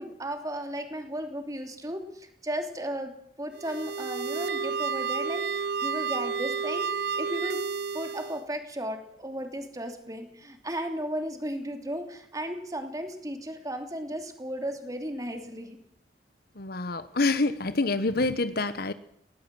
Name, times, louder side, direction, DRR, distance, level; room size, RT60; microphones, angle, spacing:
voice 1, 0.0-7.6 7.9-15.8, equal, 20° right, 5 dB, 3.0 m, -35 dB
sound 1, 3.5-8.4, right 5 dB, 60° right, 0.9 m, -31 dB
voice 2, 16.6-18.9, left 3 dB, 60° left, 13 dB, 1.1 m, -27 dB
19.5 x 18.0 x 7.7 m, 0.68 s
head